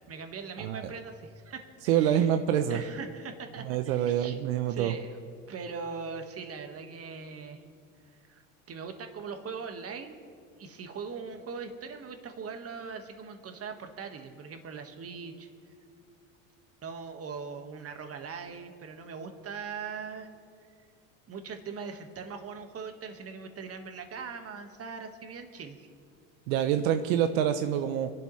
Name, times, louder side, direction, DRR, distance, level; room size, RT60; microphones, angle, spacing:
voice 1, 0.1-2.3 2.7-4.4 4.7-5.2 5.5-7.6 8.1-8.4 8.7-10.2 10.6-15.5 16.8-20.3 21.3-25.8, right 5 dB, 35° right, 6 dB, 1.6 m, -41 dB
voice 2, 0.6-0.9 1.9-2.8 3.6-4.9 26.5-28.1, right 10 dB, 80° right, 8 dB, 0.8 m, -26 dB
25.0 x 11.5 x 3.2 m, 2.3 s
supercardioid pair, 95°, 41 cm